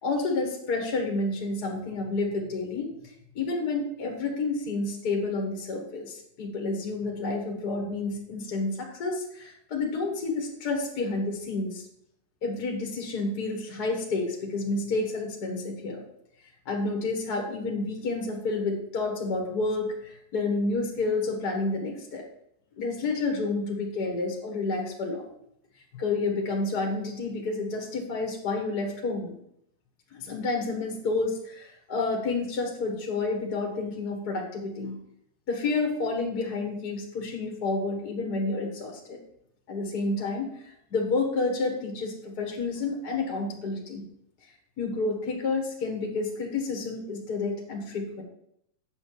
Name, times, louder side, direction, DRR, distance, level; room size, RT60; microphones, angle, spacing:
voice 1, 0.0-2.9 3.3-11.8 12.4-16.0 16.6-22.2 22.7-25.2 25.9-29.4 30.1-35.0 35.5-39.2 39.7-44.0 44.8-48.2, left 3 dB, 45° left, 1 dB, 1.3 m, -30 dB
8.5 x 6.7 x 4.7 m, 0.73 s
omnidirectional pair, 3.8 m